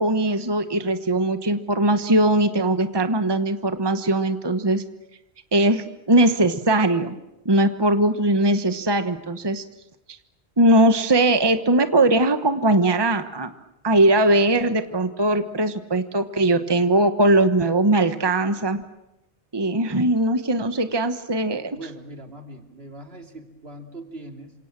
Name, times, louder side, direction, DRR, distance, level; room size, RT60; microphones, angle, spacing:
voice 1, 0.0-4.8 5.5-7.2 7.4-9.6 10.6-13.5 13.8-18.8 19.5-21.8, right 1 dB, 25° right, 9 dB, 1.2 m, -20 dB
voice 2, 21.7-24.5, right 1 dB, 65° right, 5 dB, 3.1 m, -40 dB
28.5 x 26.5 x 7.6 m, 0.89 s
omnidirectional pair, 1.1 m